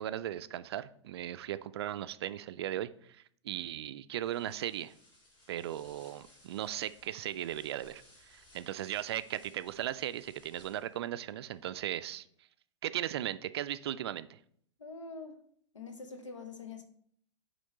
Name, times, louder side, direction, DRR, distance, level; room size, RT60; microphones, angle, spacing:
voice 1, 0.0-4.9 5.5-12.3 12.8-14.4, right 12 dB, 55° right, 13 dB, 0.4 m, -37 dB
sound 1, 4.2-11.1, left 2 dB, 30° left, 3.0 m, -62 dB
voice 2, 14.8-15.4 15.7-16.8, left 4 dB, 75° left, 7 dB, 1.0 m, -44 dB
9.1 x 3.1 x 4.1 m, 0.63 s
figure-of-eight pair, 95°, 16 cm